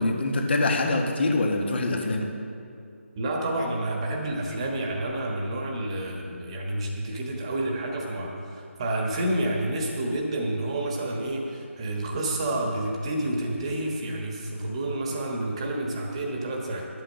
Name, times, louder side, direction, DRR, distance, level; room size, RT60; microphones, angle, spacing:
voice 1, 0.0-2.3, left 2 dB, 50° left, 2 dB, 1.6 m, -24 dB
voice 2, 3.2-16.9, right 1 dB, 25° right, 0 dB, 1.3 m, -29 dB
11.5 x 8.9 x 6.4 m, 2.4 s
figure-of-eight pair, 165°, 7 cm